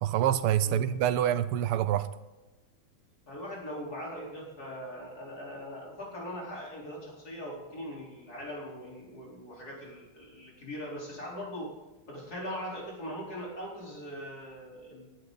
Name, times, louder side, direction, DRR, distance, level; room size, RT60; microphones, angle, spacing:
voice 1, 0.0-2.1, right 11 dB, 85° right, 1.7 m, -26 dB
voice 2, 3.3-11.7 12.1-15.1, equal, 45° left, 4.6 m, -41 dB
20.0 x 11.5 x 4.0 m
omnidirectional pair, 2.4 m